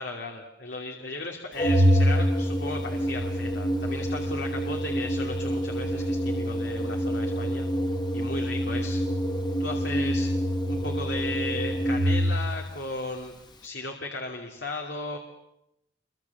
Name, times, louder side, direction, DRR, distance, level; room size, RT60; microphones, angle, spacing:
voice 1, 0.0-7.7 8.1-9.0 9.6-10.3 10.7-13.3 13.6-15.2, left 2 dB, 70° left, 2 dB, 2.7 m, -36 dB
Organ, 1.6-12.6, equal, 25° left, 1.9 m, -26 dB
28.0 x 24.5 x 7.2 m, 0.83 s
head